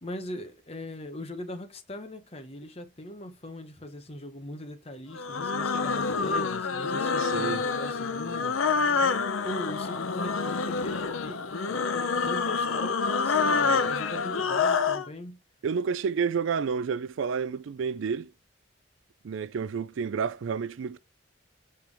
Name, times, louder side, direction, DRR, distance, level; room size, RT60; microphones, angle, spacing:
voice 1, 0.0-8.6 9.4-15.4, left 1 dB, 30° left, 1.0 m, -40 dB
sound 1, 5.1-15.1, left 5 dB, 90° left, 0.7 m, -27 dB
voice 2, 7.2-7.6 15.6-18.3 19.2-21.0, right 6 dB, 75° right, 0.4 m, -30 dB
7.0 x 4.5 x 3.4 m
head